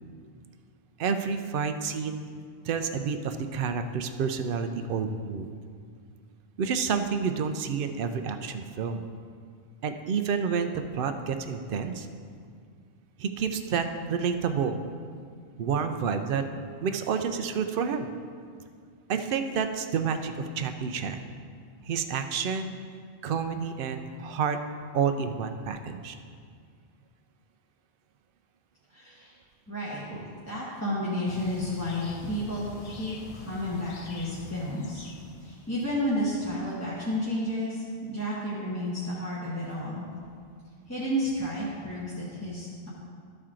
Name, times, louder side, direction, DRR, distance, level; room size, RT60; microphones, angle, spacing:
voice 1, 1.0-2.3 2.6-5.5 6.6-9.0 9.8-12.1 13.2-14.8 15.6-16.4 16.8-18.1 19.1-21.2 21.8-22.7 23.2-24.6 24.9-26.2, right 6 dB, 65° right, 7 dB, 0.7 m, -29 dB
voice 2, 28.9-29.3 29.7-30.2 30.5-35.0 35.4-37.8 38.1-40.0 40.9-42.9, equal, 15° left, -9 dB, 1.2 m, -31 dB
sound 1, 31.3-36.2, left 4 dB, 45° left, 0.5 m, -46 dB
13.0 x 4.4 x 3.7 m, 2.1 s
omnidirectional pair, 1.0 m